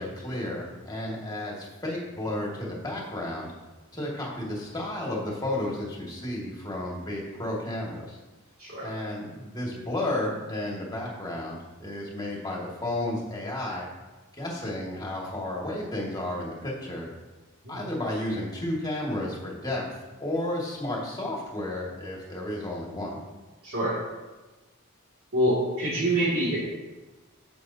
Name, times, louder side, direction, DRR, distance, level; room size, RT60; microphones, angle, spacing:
voice 1, 0.0-3.5 3.9-8.2 8.8-13.9 14.3-17.1 17.7-19.8 20.2-23.2, left 1 dB, 20° left, -3 dB, 2.0 m, -32 dB
voice 2, 23.6-24.0 25.3-26.6, right 1 dB, 70° right, -8 dB, 2.3 m, -26 dB
9.7 x 7.2 x 2.8 m, 1.2 s
head